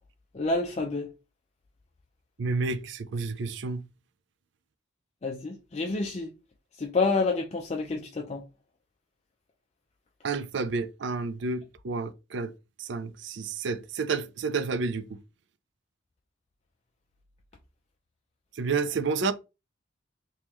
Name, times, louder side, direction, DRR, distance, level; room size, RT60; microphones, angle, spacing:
voice 1, 0.3-1.1 5.2-6.3 6.8-8.4, left 3 dB, 35° left, 0.5 m, -28 dB
voice 2, 2.4-3.8 10.2-12.5 12.9-15.1 18.6-19.3, right 4 dB, 65° right, 0.4 m, -30 dB
3.6 x 2.9 x 3.0 m
head